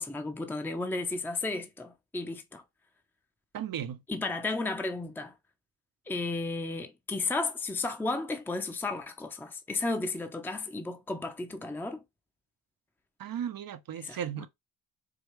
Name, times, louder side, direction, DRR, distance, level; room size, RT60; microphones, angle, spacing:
voice 1, 0.0-2.6 4.1-5.3 6.1-12.0 14.0-14.5, left 3 dB, 5° left, 0.7 m, -33 dB
voice 2, 3.5-4.0 13.2-14.5, right 9 dB, 50° right, 0.7 m, -35 dB
4.8 x 2.4 x 3.0 m
supercardioid pair, 65°, 46 cm